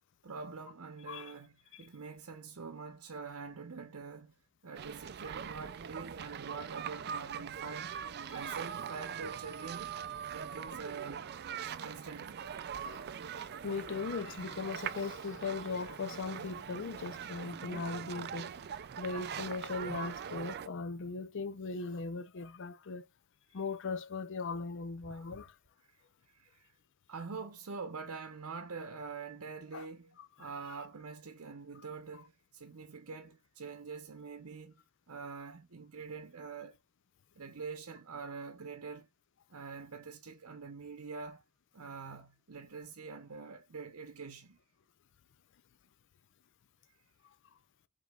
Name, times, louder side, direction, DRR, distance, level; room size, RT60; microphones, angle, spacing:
voice 1, 0.2-4.3 4.6-8.0 8.3-10.0 10.3-11.3 11.8-12.5 25.0-25.4 26.3-26.7 27.1-34.8 35.1-36.8 37.3-39.1 39.5-41.4 41.7-44.6, right 4 dB, 75° right, 0.8 m, -45 dB
sound 1, 4.7-20.7, right 8 dB, 45° right, 0.4 m, -42 dB
voice 2, 8.3-8.6 12.8-13.1 13.3-18.5 19.0-23.1 23.5-25.5 29.7-29.9 30.2-30.5, left 4 dB, 55° left, 0.5 m, -39 dB
4.9 x 3.7 x 2.3 m
head